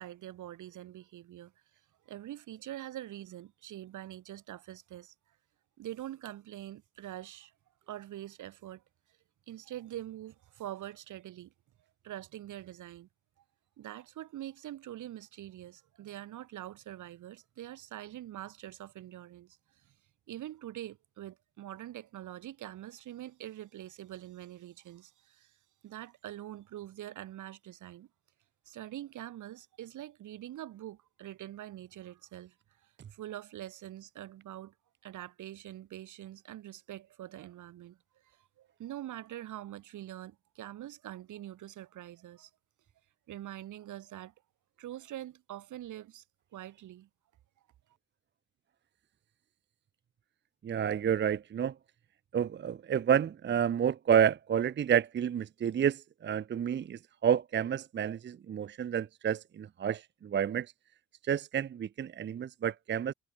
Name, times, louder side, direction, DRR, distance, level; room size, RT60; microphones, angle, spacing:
voice 1, 0.0-1.5 2.0-5.1 5.8-7.5 7.9-8.8 9.5-11.5 12.0-13.1 13.8-19.6 20.3-25.5 25.8-28.1 28.7-32.5 33.1-34.7 35.0-38.0 38.2-42.5 43.3-44.3 44.8-46.2 46.5-47.1, right 13 dB, 80° right, 5.0 m, -44 dB
voice 2, 50.6-51.7 52.3-60.7 61.3-63.1, right 8 dB, 40° right, 0.6 m, -29 dB
cardioid pair, 90°, 30 cm